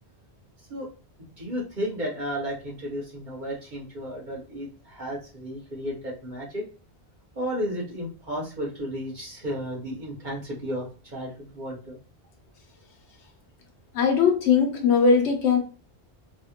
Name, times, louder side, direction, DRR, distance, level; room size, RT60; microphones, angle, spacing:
voice 1, 1.4-6.6 7.3-12.0, equal, 45° right, -4 dB, 1.4 m, -33 dB
voice 2, 13.9-15.6, left 5 dB, 90° left, 3 dB, 1.1 m, -20 dB
3.4 x 2.4 x 2.8 m, 0.35 s
omnidirectional pair, 1.1 m